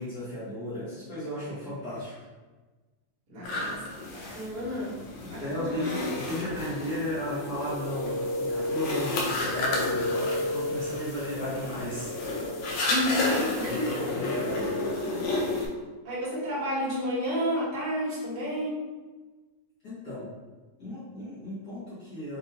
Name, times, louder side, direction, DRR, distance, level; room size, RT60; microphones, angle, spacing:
voice 1, 0.0-2.1 5.2-12.1 13.7-14.7 19.8-20.3 20.8-22.4, left 1 dB, 60° left, -12 dB, 1.0 m, -35 dB
voice 2, 3.3-3.8 4.1-5.0 5.3-6.1 12.9-14.1 16.0-18.8, equal, 50° right, -8 dB, 2.1 m, -31 dB
sound 1, 3.4-15.7, left 2 dB, 75° left, 1.6 m, -32 dB
sound 2, 7.4-15.3, left 1 dB, 65° right, 2.6 m, -34 dB
6.1 x 2.6 x 2.8 m, 1.3 s
omnidirectional pair, 4.0 m